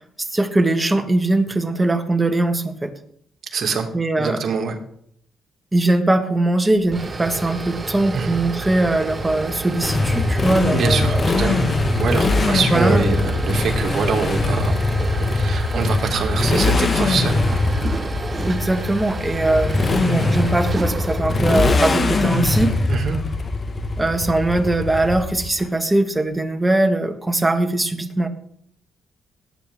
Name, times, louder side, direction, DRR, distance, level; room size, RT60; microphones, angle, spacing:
voice 1, 0.2-2.9 3.9-4.4 5.7-11.2 12.7-13.1 18.5-22.7 24.0-28.3, right 2 dB, 15° right, 7 dB, 1.6 m, -21 dB
voice 2, 3.5-3.9 4.2-4.8 8.1-8.4 10.7-11.6 12.0-14.7 15.0-17.6 22.9-23.2, right 5 dB, 60° right, 3 dB, 2.3 m, -24 dB
sound 1, 6.8-21.2, right 3 dB, 30° right, 1.3 m, -31 dB
Motorcycle, 9.8-25.6, left 3 dB, 35° left, 1.7 m, -21 dB
18.0 x 9.1 x 3.7 m, 0.68 s
cardioid pair, 90°, 0 cm